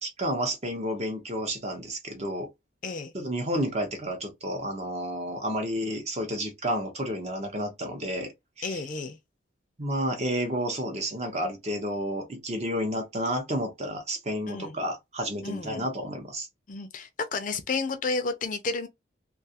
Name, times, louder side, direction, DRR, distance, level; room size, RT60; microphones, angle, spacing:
voice 1, 0.0-2.5 3.1-8.3 8.6-8.8 9.8-16.5, equal, 35° right, 0.8 m, -31 dB
voice 2, 2.8-3.1 8.6-9.2 14.5-14.8 15.4-15.9 16.7-18.9, left 4 dB, 45° left, 0.5 m, -31 dB
2.4 x 2.4 x 2.7 m
head